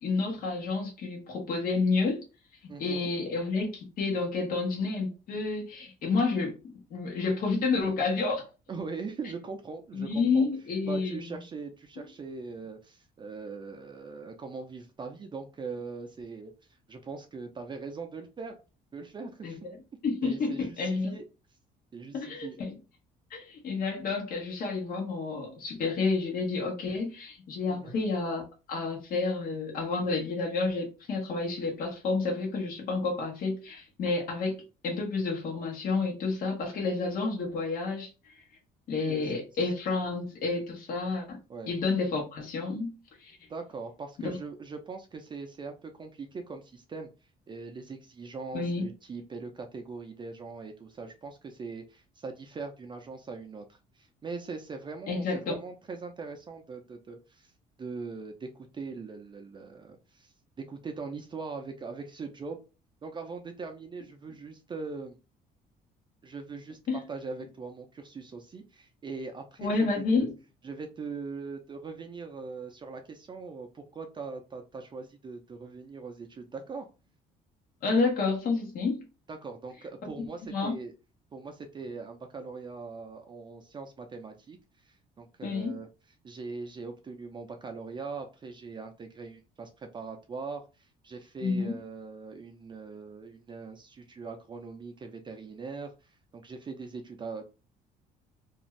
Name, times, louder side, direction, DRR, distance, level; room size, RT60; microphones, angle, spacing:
voice 1, 0.0-2.2 2.8-8.4 9.9-11.4 19.4-19.6 20.0-21.2 22.1-22.8 23.3-28.4 28.7-38.4 38.9-41.4 41.7-42.9 43.2-43.4 44.2-44.4 48.5-48.9 55.1-55.5 66.9-67.0 69.6-70.3 77.8-79.0 80.2-80.7 85.4-85.8 91.4-91.7, left 4 dB, 60° left, 1.0 m, -30 dB
voice 2, 2.7-3.1 8.7-10.5 10.9-16.5 16.9-18.6 18.9-19.6 20.2-21.2 21.9-22.6 27.7-28.0 36.6-37.0 39.1-39.4 41.5-41.7 43.5-47.1 47.5-57.5 57.8-60.3 60.6-62.6 63.0-65.2 66.2-70.3 70.6-76.9 79.3-80.9 81.3-84.6 84.9-85.9 86.2-97.5, right 4 dB, 30° right, 0.5 m, -41 dB
2.6 x 2.4 x 3.0 m
cardioid pair, 110°, 17 cm